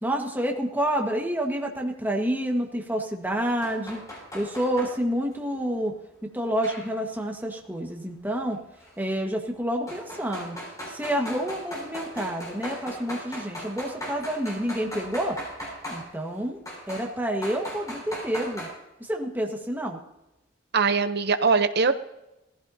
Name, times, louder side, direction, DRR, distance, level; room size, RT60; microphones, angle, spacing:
voice 1, 0.0-4.0 4.3-5.9 6.2-8.6 9.0-10.5 10.9-15.4 15.9-16.6 16.9-18.7 19.1-20.0, equal, 10° right, 1 dB, 1.6 m, -28 dB
sound 1, 3.6-4.9 6.6-7.2 8.8-8.9 9.9-16.0 16.7-17.1 17.4-18.7, equal, 15° left, 6.6 m, -37 dB
voice 2, 20.7-21.9, right 4 dB, 55° right, 10 dB, 0.9 m, -21 dB
19.0 x 15.0 x 2.8 m, 0.93 s
head